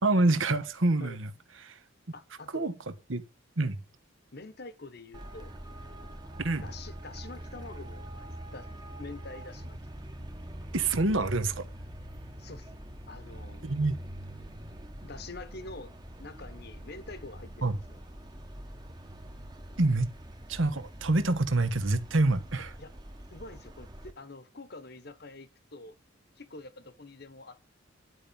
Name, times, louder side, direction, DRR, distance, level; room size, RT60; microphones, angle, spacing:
voice 1, 0.0-1.3 1.6-1.8 2.5-2.7 3.1-3.2 3.6-3.8 6.4-6.7 10.7-11.7 13.6-13.9 17.6-17.7 19.8-20.1 20.5-22.7, right 2 dB, 75° right, 1.2 m, -26 dB
voice 2, 2.1-2.7 4.3-5.5 6.6-8.7 9.0-9.8 12.4-12.7 13.1-13.8 15.0-18.0 22.8-22.9 23.3-26.0 26.4-27.6, left 3 dB, 50° left, 1.1 m, -46 dB
Traffic noise roadway noise, 5.1-24.1, right 1 dB, 20° right, 1.1 m, -44 dB
11.0 x 5.4 x 8.6 m
head